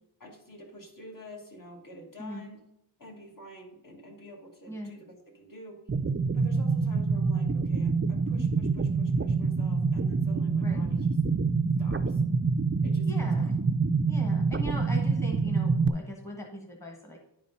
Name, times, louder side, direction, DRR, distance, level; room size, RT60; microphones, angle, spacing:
voice 1, 0.2-2.6 3.0-5.8 6.3-11.2 11.8-12.2 12.8-13.5, equal, 45° left, 0 dB, 1.9 m, -48 dB
sound 1, 5.9-15.9, right 4 dB, 30° right, 0.4 m, -26 dB
voice 2, 13.0-13.5 14.1-17.2, equal, 5° left, 1 dB, 1.3 m, -40 dB
10.0 x 4.2 x 5.4 m, 0.82 s
wide cardioid pair, 90°, 46 cm